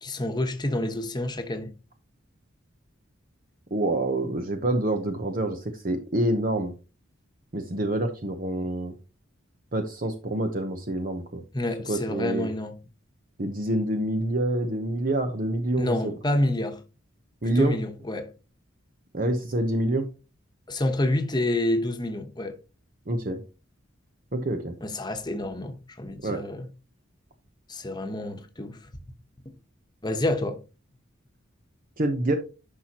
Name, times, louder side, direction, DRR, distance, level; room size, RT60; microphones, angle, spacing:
voice 1, 0.0-1.7 11.5-12.8 15.8-16.8 17.5-18.3 20.7-22.6 24.8-26.7 27.7-28.8 30.0-30.6, left 1 dB, 20° left, 1.2 m, -28 dB
voice 2, 3.7-6.7 7.5-8.9 9.7-11.4 11.9-12.5 13.4-16.1 17.4-17.8 19.1-20.1 23.1-23.4 24.3-24.7 26.2-26.4 32.0-32.4, right 1 dB, 45° right, 0.9 m, -27 dB
11.0 x 5.8 x 3.0 m
head